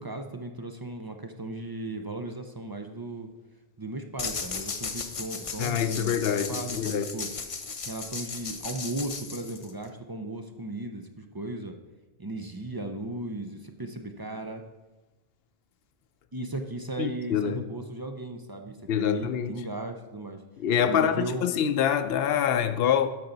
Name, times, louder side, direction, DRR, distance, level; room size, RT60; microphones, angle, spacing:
voice 1, 0.0-3.3 3.8-7.3 7.8-11.7 12.2-14.6 16.3-20.4 20.9-21.5, right 2 dB, 30° right, 0.5 m, -36 dB
sound 1, 4.2-9.9, left 5 dB, 40° left, 0.6 m, -36 dB
voice 2, 5.6-7.1 17.0-17.6 18.9-19.6 20.6-23.1, left 8 dB, 70° left, 0.8 m, -26 dB
12.0 x 5.8 x 3.9 m
omnidirectional pair, 1.1 m